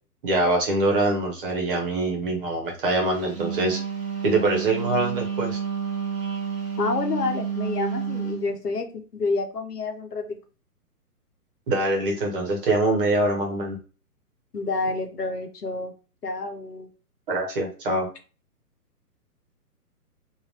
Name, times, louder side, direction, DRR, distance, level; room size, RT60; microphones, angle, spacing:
voice 1, 0.2-3.8 4.2-5.6 11.7-13.8 17.3-18.1, right 2 dB, 35° right, 0 dB, 1.2 m, -24 dB
Wind instrument woodwind instrument, 3.2-8.5, right 7 dB, 20° right, 0.5 m, -30 dB
voice 2, 6.8-10.4 14.5-15.9 16.2-16.9, left 3 dB, 80° left, 6 dB, 0.9 m, -28 dB
3.1 x 2.6 x 2.8 m, 0.35 s
figure-of-eight pair, 125°, 46 cm